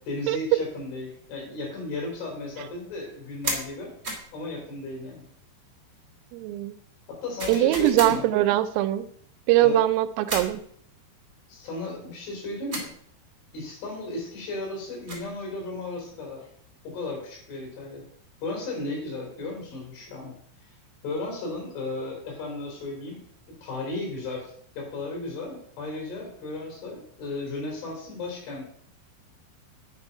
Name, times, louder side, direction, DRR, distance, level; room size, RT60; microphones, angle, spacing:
voice 1, 0.1-3.9 4.3-5.3 7.1-8.3 9.6-9.8 11.5-12.9 13.5-16.5 16.8-18.1 18.4-20.4 20.6-20.7 21.0-23.2 23.6-28.6, left 2 dB, 65° left, -1 dB, 6.1 m, -35 dB
sound 1, 3.4-3.7 4.0-4.3 7.4-8.2 10.3-10.6 12.7-12.9 14.8-15.3, right 2 dB, 25° right, 1.5 m, -32 dB
voice 2, 6.3-6.7 7.5-9.1 9.5-10.6, right 14 dB, 85° right, 12 dB, 3.2 m, -22 dB
10.5 x 6.8 x 5.5 m, 0.63 s
omnidirectional pair, 5.9 m